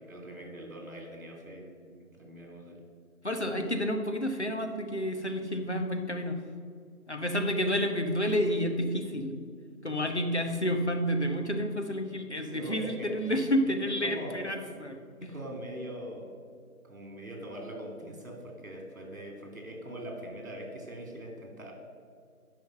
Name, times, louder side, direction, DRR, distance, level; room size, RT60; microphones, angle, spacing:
voice 1, 0.0-2.8 7.4-7.5 12.3-13.1 14.0-14.4 15.3-16.3 16.8-21.7, right 1 dB, 60° right, 1 dB, 2.8 m, -42 dB
voice 2, 3.2-6.4 7.1-9.4 9.8-15.3, equal, 45° left, 4 dB, 1.1 m, -30 dB
10.5 x 5.6 x 6.6 m, 2.1 s
figure-of-eight pair, 180°, 45 cm